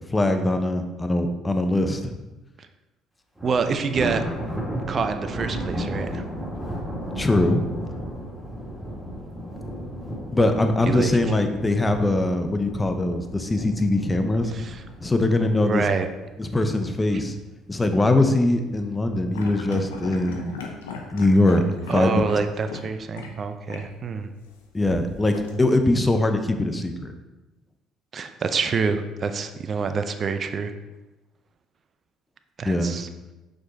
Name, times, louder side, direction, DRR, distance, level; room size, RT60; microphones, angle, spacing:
voice 1, 0.1-2.1 7.2-7.6 10.3-14.5 15.0-15.9 16.4-17.4 17.7-20.6 21.1-21.6 21.9-22.2 24.7-27.1 32.6-33.0, left 2 dB, 20° left, 7 dB, 0.9 m, -22 dB
Thunder, 3.4-16.7 17.0-17.3 17.7-17.8 18.7-19.3, equal, 5° right, 2.4 m, -34 dB
voice 2, 3.4-4.2 4.9-6.2 10.9-11.2 14.5-14.8 15.4-16.1 21.9-24.3 28.1-30.7 32.6-33.1, right 5 dB, 45° right, 8 dB, 0.6 m, -26 dB
sound 1, 19.3-22.9 23.1-23.3 23.7-23.9 24.8-25.9, left 5 dB, 90° left, 0.7 m, -36 dB
6.0 x 5.1 x 4.1 m, 1.1 s
hypercardioid pair, 60°, 0 cm